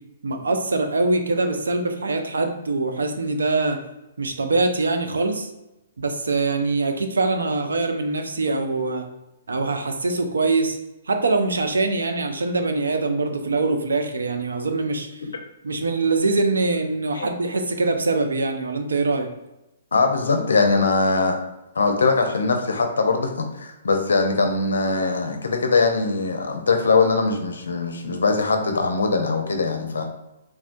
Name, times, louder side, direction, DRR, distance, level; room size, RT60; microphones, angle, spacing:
voice 1, 0.2-3.8 4.2-5.5 6.0-9.1 9.5-10.8 11.1-15.1 15.6-19.3, right 3 dB, 85° right, 5 dB, 0.4 m, -23 dB
voice 2, 19.9-21.4 21.7-30.0, left 4 dB, 85° left, 4 dB, 0.5 m, -21 dB
3.5 x 2.1 x 2.5 m, 0.95 s
hypercardioid pair, 135°, 0 cm